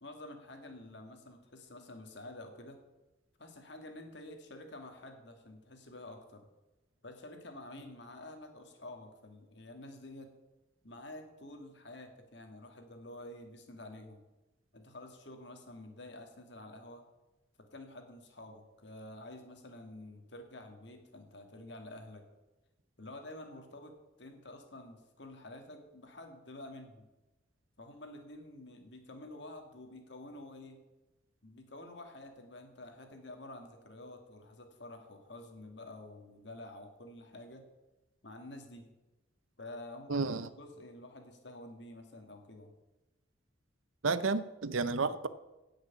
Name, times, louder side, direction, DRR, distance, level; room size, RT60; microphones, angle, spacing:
voice 1, 0.0-2.8 3.4-6.5 7.0-10.3 10.8-14.2 14.7-17.0 17.6-22.2 23.0-23.9 24.2-27.1 27.8-30.8 31.4-37.7 38.2-38.9 39.6-40.3 40.6-42.7, left 1 dB, 60° left, 4 dB, 2.2 m, -49 dB
voice 2, 40.1-40.5 44.0-45.3, right 4 dB, 85° right, 14 dB, 0.8 m, -31 dB
17.0 x 6.5 x 7.2 m, 1.1 s
head